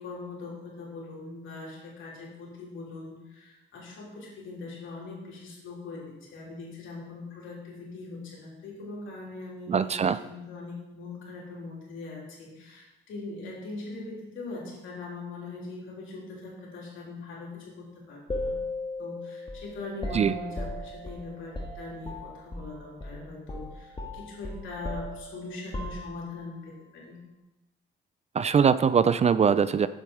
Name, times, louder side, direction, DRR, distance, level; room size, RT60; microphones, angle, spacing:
voice 1, 0.0-18.5 19.0-27.2, left 3 dB, 80° left, -4 dB, 3.2 m, -41 dB
voice 2, 9.7-10.2 20.1-20.3 28.3-29.9, right 7 dB, 35° right, 14 dB, 0.4 m, -22 dB
sound 1, 18.3-22.7 23.0-23.2 23.5-26.5, left 1 dB, 25° left, 1.7 m, -37 dB
7.4 x 7.0 x 4.9 m, 0.99 s
cardioid pair, 90°, 20 cm